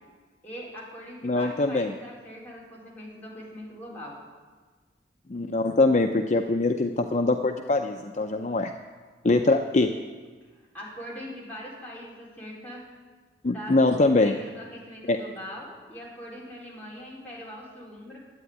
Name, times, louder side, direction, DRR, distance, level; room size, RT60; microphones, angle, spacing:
voice 1, 0.4-4.1 10.7-12.8 13.5-18.2, equal, 10° left, -6 dB, 4.1 m, -41 dB
voice 2, 1.2-1.9 5.3-8.7 9.2-9.9 13.4-14.4 15.1-15.2, left 2 dB, 40° left, 4 dB, 0.6 m, -23 dB
12.5 x 9.1 x 9.4 m, 1.4 s
head